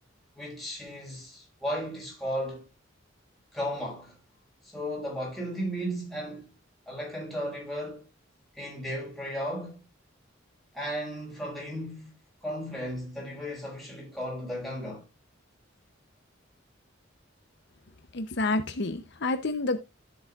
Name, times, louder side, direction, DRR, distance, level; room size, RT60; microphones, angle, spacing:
voice 1, 0.4-2.6 3.5-4.2 4.6-6.5 6.9-8.1 8.6-9.8 10.7-12.2 12.4-15.0, equal, ahead, 5.0 m, -35 dB
voice 2, 18.1-19.8, left 2 dB, 60° left, 0.8 m, -29 dB
13.0 x 7.9 x 2.5 m
head